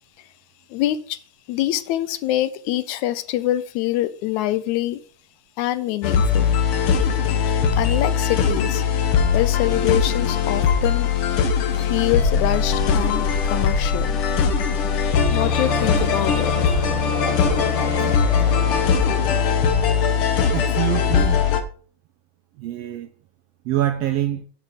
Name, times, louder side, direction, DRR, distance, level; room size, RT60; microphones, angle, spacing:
voice 1, 0.7-1.2 1.5-5.0 5.6-6.6 7.7-8.8 9.3-11.1 11.8-14.2 15.1-17.1, left 14 dB, 80° left, 2.0 m, -25 dB
sound 1, 6.0-21.6, left 6 dB, 60° left, 1.5 m, -20 dB
sound 2, 15.4-20.2, left 2 dB, 45° left, 4.5 m, -31 dB
voice 2, 20.5-21.4 22.6-23.1 23.6-24.4, right 12 dB, 80° right, 1.4 m, -25 dB
8.0 x 6.5 x 5.4 m
omnidirectional pair, 3.4 m